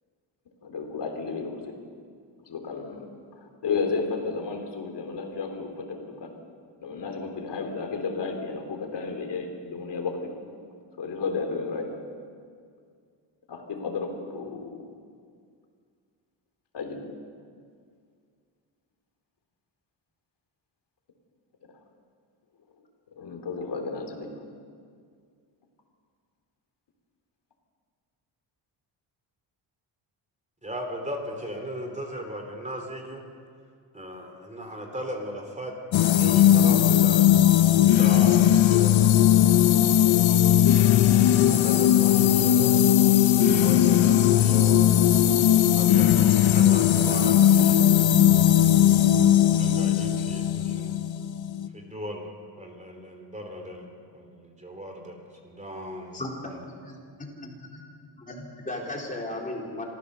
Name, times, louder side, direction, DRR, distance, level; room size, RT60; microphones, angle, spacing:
voice 1, 0.6-1.7 2.4-6.4 6.8-10.3 11.0-12.0 13.5-14.9 16.7-17.0 23.2-24.4, left 4 dB, 60° left, 4 dB, 3.4 m, -33 dB
voice 2, 30.6-33.2 33.9-37.3 37.6-39.2 39.8-40.4 40.7-42.7 43.5-45.0 45.7-46.2 46.5-48.2 49.5-51.0 51.7-52.3 52.6-55.2 55.4-56.6, equal, 15° right, 3 dB, 3.2 m, -38 dB
sound 1, 35.9-51.7, left 11 dB, 80° left, 1.0 m, -19 dB
voice 3, 56.1-57.8 58.2-59.9, left 1 dB, 15° left, -1 dB, 3.8 m, -36 dB
26.5 x 15.0 x 6.8 m, 2.2 s
cardioid pair, 130°, 46 cm